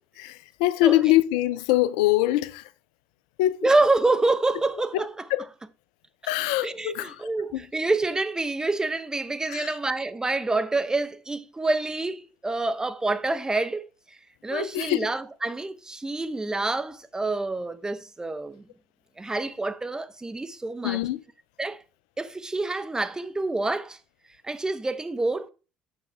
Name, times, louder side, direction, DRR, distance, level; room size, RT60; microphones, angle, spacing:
voice 1, 0.2-2.6 3.4-3.7 4.9-5.0 5.3-5.4 6.3-7.2 7.5-7.6 9.5-9.7 14.5-15.1 20.8-21.2, left 15 dB, 75° left, 0.4 m, -23 dB
voice 2, 3.6-5.2 6.6-13.9 14.4-18.6 19.2-21.0 21.6-21.8 22.2-24.0 24.4-25.5, right 2 dB, 15° right, 0.7 m, -27 dB
7.0 x 6.4 x 3.4 m
hypercardioid pair, 60°, 4 cm